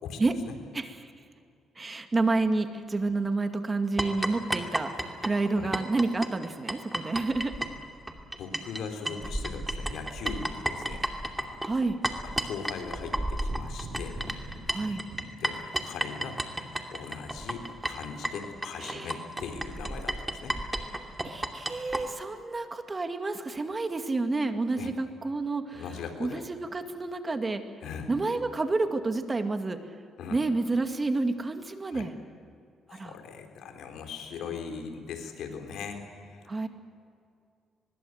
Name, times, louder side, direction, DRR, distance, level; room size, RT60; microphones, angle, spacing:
voice 1, 0.7-1.1 1.8-4.9 5.2-7.5 11.6-12.0 14.7-15.0 18.8-19.1 21.2-25.8 26.2-27.6 28.1-29.8 30.3-32.1 32.9-33.1 36.5-36.7, right 3 dB, 25° right, 7 dB, 2.1 m, -29 dB
sound 1, 4.0-8.8 9.1-22.0, right 1 dB, 10° right, 2.7 m, -32 dB
voice 2, 8.2-11.1 11.3-11.6 12.2-14.2 15.4-20.6 24.8-24.9 25.7-26.4 27.8-28.1 30.2-30.4 31.9-32.1 32.9-36.7, left 6 dB, 80° left, 5 dB, 3.8 m, -40 dB
sound 2, 13.1-16.4, right 2 dB, 80° right, 8.0 m, -45 dB
24.0 x 21.5 x 7.9 m, 2.4 s
cardioid pair, 90°, 0 cm